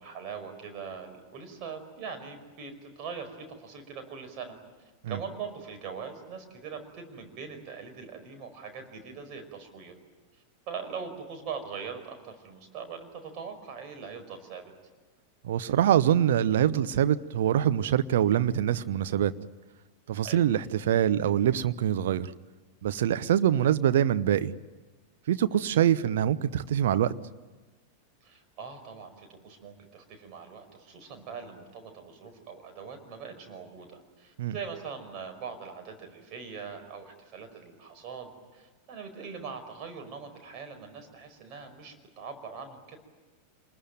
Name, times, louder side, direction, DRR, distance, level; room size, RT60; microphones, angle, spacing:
voice 1, 0.0-4.6 5.1-10.0 10.7-14.7 20.2-20.4 25.5-25.7 28.2-43.0, right 6 dB, 40° right, 5 dB, 5.3 m, -42 dB
voice 2, 15.4-19.3 20.1-22.3 22.8-24.5 25.3-27.1 34.4-34.5, right 10 dB, 60° right, 12 dB, 0.9 m, -24 dB
27.5 x 21.0 x 9.2 m, 1.2 s
figure-of-eight pair, 90°, 0 cm